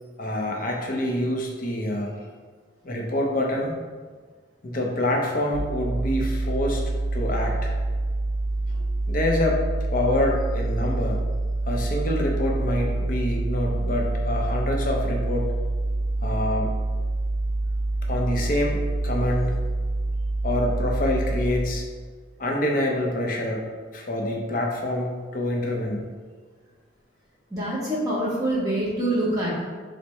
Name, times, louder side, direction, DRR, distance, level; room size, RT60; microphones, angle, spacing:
voice 1, 0.2-2.3 2.8-3.7 4.6-6.8 7.1-7.7 8.7-9.6 9.9-11.2 11.7-15.5 16.2-16.7 18.1-19.5 20.4-21.8 22.4-23.6 23.9-26.1, left 1 dB, 45° left, 0 dB, 0.6 m, -26 dB
sound 1, 5.5-21.5, right 2 dB, 45° right, 0.5 m, -26 dB
voice 2, 27.5-29.6, right 1 dB, 20° right, -7 dB, 1.2 m, -25 dB
4.5 x 2.1 x 4.4 m, 1.5 s
head